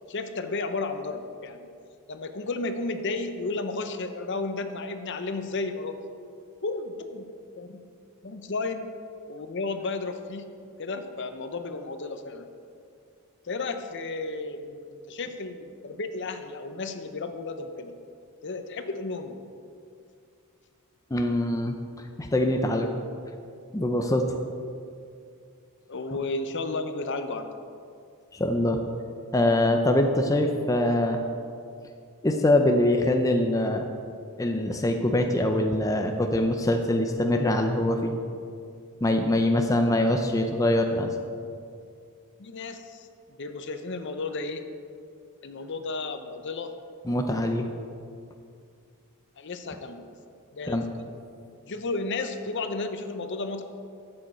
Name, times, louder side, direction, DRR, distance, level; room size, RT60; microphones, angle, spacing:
voice 1, 0.1-1.7 2.1-6.0 6.6-7.3 7.6-7.8 8.2-8.9 9.3-10.5 10.8-12.5 13.4-17.9 18.4-19.4 25.9-27.5 42.4-43.1 43.4-44.6 45.4-46.7 49.4-50.1 50.5-50.8 51.7-53.6, left 3 dB, 55° left, 8 dB, 0.7 m, -33 dB
voice 2, 21.1-21.8 22.2-22.9 23.7-24.3 28.3-28.8 29.3-31.2 32.2-33.8 34.4-38.1 39.0-41.1 47.1-47.7 50.7-50.9, left 1 dB, 15° left, 4 dB, 0.5 m, -23 dB
12.0 x 7.7 x 4.4 m, 2.3 s
head